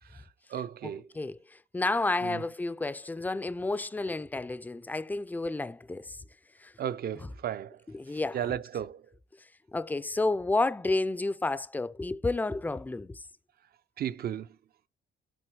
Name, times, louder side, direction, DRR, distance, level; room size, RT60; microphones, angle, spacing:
voice 1, 0.0-1.1 2.2-2.4 6.8-9.1 14.0-14.6, right 10 dB, 50° right, 0.5 m, -35 dB
voice 2, 0.8-6.2 6.6-6.7 7.9-8.4 9.7-13.2, left 2 dB, 10° left, 0.3 m, -31 dB
7.8 x 3.8 x 4.6 m
cardioid pair, 90°, 20 cm